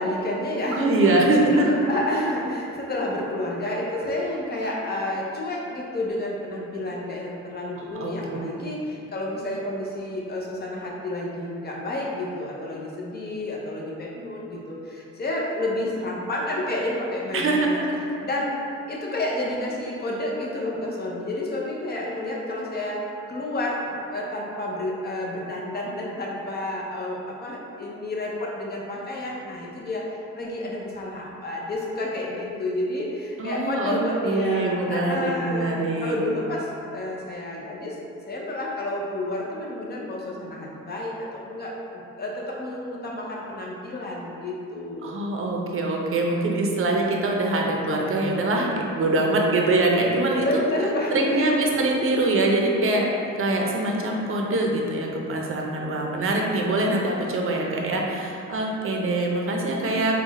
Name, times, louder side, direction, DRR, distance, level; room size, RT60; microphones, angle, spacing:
voice 1, 0.0-0.9 1.5-17.8 18.2-18.6 18.9-35.7 36.0-38.0 38.3-45.1 50.4-51.7, left 1 dB, 30° left, -3 dB, 0.8 m, -30 dB
voice 2, 0.7-1.7 7.9-8.1 17.3-18.0 33.4-36.2 45.0-50.6 51.1-53.1 53.4-60.1, right 2 dB, 45° right, 0 dB, 0.7 m, -23 dB
3.9 x 2.3 x 4.0 m, 2.6 s
cardioid pair, 90°, 30 cm